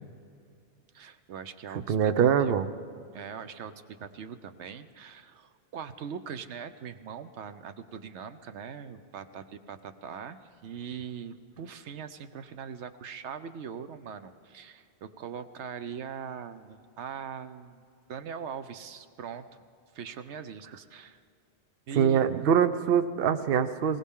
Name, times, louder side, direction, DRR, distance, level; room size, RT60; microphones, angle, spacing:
voice 1, 0.9-2.5 3.1-17.8 18.1-19.4 19.9-21.2 21.9-22.2, right 7 dB, 85° right, 11 dB, 1.0 m, -41 dB
voice 2, 1.7-2.7 21.9-24.0, right 8 dB, 60° right, 10 dB, 0.8 m, -24 dB
20.5 x 18.5 x 3.7 m, 2.4 s
omnidirectional pair, 1.1 m